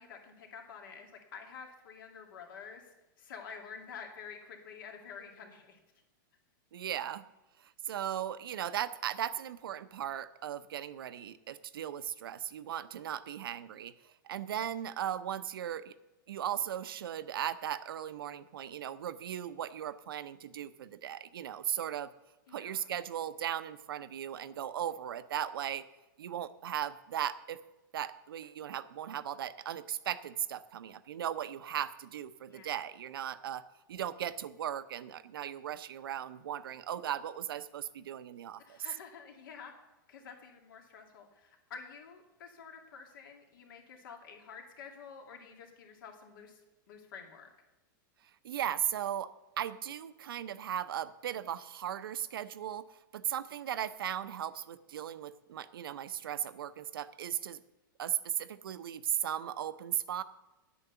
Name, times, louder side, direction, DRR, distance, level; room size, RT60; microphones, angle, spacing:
voice 1, 0.0-2.8 3.2-5.8 22.5-22.9 32.5-32.7 38.6-39.7 40.1-46.6 46.9-47.5, left 6 dB, 70° left, 2 dB, 2.5 m, -49 dB
voice 2, 6.7-7.2 7.6-15.9 16.3-22.1 22.5-25.8 26.2-27.6 27.9-33.6 33.9-38.8 48.4-49.3 49.6-57.6 58.0-60.2, right 10 dB, 85° right, 13 dB, 0.8 m, -37 dB
9.8 x 8.6 x 6.9 m, 1.0 s
supercardioid pair, 145°, 12 cm